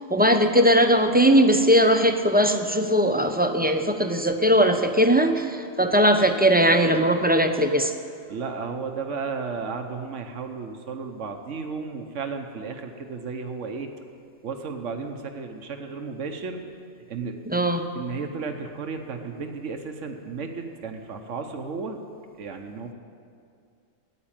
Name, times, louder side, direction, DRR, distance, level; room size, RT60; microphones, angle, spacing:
voice 1, 0.1-7.9 17.5-17.8, equal, 10° right, 5 dB, 0.7 m, -19 dB
voice 2, 8.3-13.9 14.4-16.6 17.1-17.4 17.9-22.0 22.4-22.9, right 5 dB, 85° right, 5 dB, 1.4 m, -33 dB
15.5 x 9.9 x 8.9 m, 2.4 s
omnidirectional pair, 1.2 m